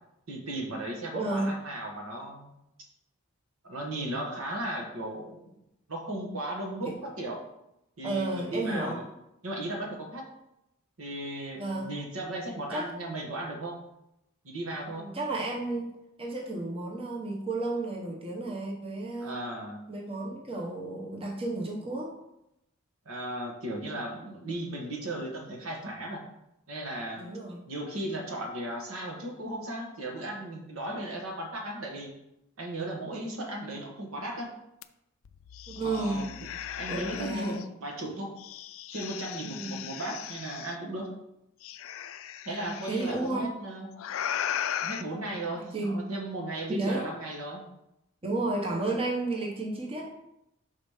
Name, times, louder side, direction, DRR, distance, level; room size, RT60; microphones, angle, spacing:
voice 1, 0.3-2.5 3.6-5.4 5.9-7.4 8.0-9.1 9.4-10.2 11.0-13.8 14.4-15.1 19.2-19.8 23.0-26.2 26.7-27.3 27.7-32.1 32.6-34.5 35.7-36.3 36.8-38.3 38.9-41.1 42.4-43.9 44.8-47.6, right 1 dB, 75° right, 0 dB, 1.4 m, -36 dB
voice 2, 1.1-1.6 6.8-6.9 8.0-9.0 11.6-11.9 12.7-12.9 14.9-15.9 16.2-19.4 19.9-22.1 27.2-27.6 35.7-36.3 36.9-37.6 39.4-39.7 42.5-43.5 45.5-46.0 46.7-47.0 48.2-50.1, right 2 dB, 25° right, -1 dB, 0.9 m, -32 dB
sound 1, 34.8-34.9 35.3-37.6 38.4-40.8 41.6-43.2 44.0-45.0, left 10 dB, 70° left, 0.4 m, -37 dB
6.0 x 4.2 x 4.9 m, 0.86 s
head